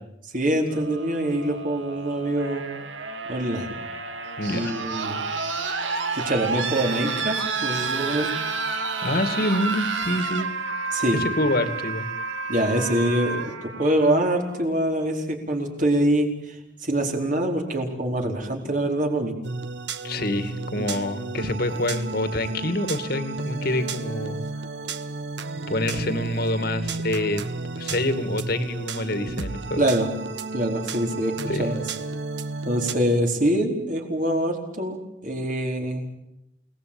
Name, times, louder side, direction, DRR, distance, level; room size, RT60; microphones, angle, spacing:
voice 1, 0.3-2.6 3.3-3.7 4.5-5.2 6.1-8.3 10.9-11.2 12.5-19.3 20.8-20.9 29.8-30.1 30.5-31.8 32.6-35.0 35.2-36.1, right 1 dB, 45° right, 2 dB, 4.7 m, -24 dB
sound 1, 0.6-14.6 15.8-15.9, right 4 dB, 85° right, 2.3 m, -30 dB
voice 2, 4.4-4.8 9.0-10.5 11.1-12.1 20.0-24.4 25.7-27.4 27.8-29.8 31.5-31.7, left 1 dB, 55° left, 10 dB, 2.4 m, -26 dB
sound 2, 19.4-32.9, right 3 dB, 65° right, 1.3 m, -33 dB
29.0 x 19.5 x 9.0 m, 0.86 s
head